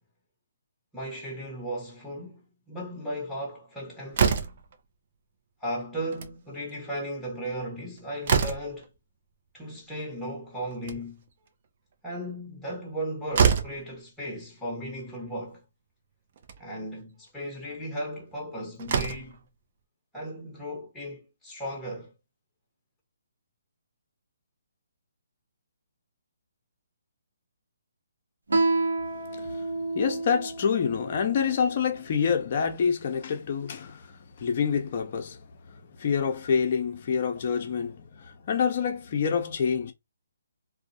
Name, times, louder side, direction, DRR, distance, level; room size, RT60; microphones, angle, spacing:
voice 1, 0.9-4.5 5.6-8.9 9.5-11.2 12.0-15.6 16.6-19.4 20.1-22.1, equal, 5° left, 0.9 m, -36 dB
Slam, 4.1-4.7 6.0-6.4 6.7-6.8 7.1-7.2 7.7-8.9 10.6-11.3 12.9-13.0 13.3-13.8 15.0-15.1 15.5-15.6 16.4-16.6 18.3-18.4 18.8-19.4, right 6 dB, 45° right, 0.5 m, -26 dB
Guitar, 28.5-31.7, right 3 dB, 80° right, 0.8 m, -29 dB
voice 2, 29.9-34.0 34.4-35.4 36.0-39.9, left 6 dB, 45° left, 0.6 m, -27 dB
2.3 x 2.1 x 2.5 m
figure-of-eight pair, 145°, 0 cm